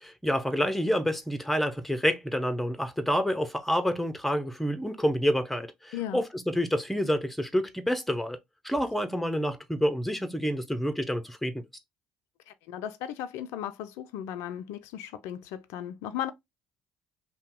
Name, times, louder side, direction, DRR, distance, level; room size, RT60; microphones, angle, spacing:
voice 1, 0.0-8.4 8.6-11.6, equal, 5° left, 0.7 m, -28 dB
voice 2, 5.9-6.2 12.5-16.3, left 10 dB, 70° left, 0.3 m, -36 dB
2.7 x 2.1 x 3.6 m
hypercardioid pair, 60°, 5 cm